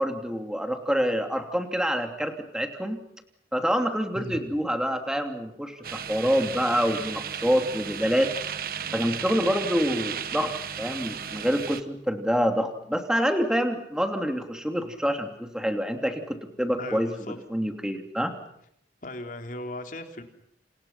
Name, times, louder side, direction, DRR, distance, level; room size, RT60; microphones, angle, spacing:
voice 1, 0.0-3.0 3.5-8.3 8.9-17.1 17.5-18.3, equal, 5° right, 5 dB, 2.9 m, -26 dB
sound 1, 5.8-11.8, right 8 dB, 55° right, 1.4 m, -34 dB
voice 2, 16.8-17.4 19.0-20.2, left 1 dB, 50° left, 5 dB, 3.8 m, -37 dB
29.5 x 28.5 x 5.8 m, 0.72 s
head